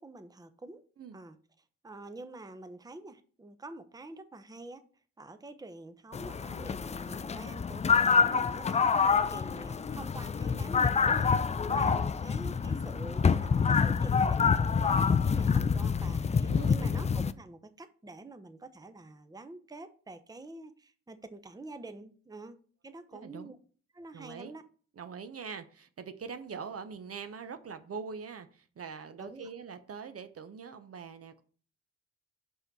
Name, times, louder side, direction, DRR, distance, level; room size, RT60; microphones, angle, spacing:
voice 1, 0.0-0.8 1.1-1.4 1.8-4.9 5.2-23.6 23.9-24.6 29.2-29.5, right 2 dB, 10° right, 0.8 m, -47 dB
sound 1, 6.1-17.3, left 6 dB, 20° left, 0.4 m, -27 dB
voice 2, 11.7-12.1 16.5-16.8 23.1-23.5 24.1-24.5 25.0-31.4, right 5 dB, 45° right, 0.8 m, -43 dB
5.5 x 5.4 x 4.6 m
hypercardioid pair, 45°, 34 cm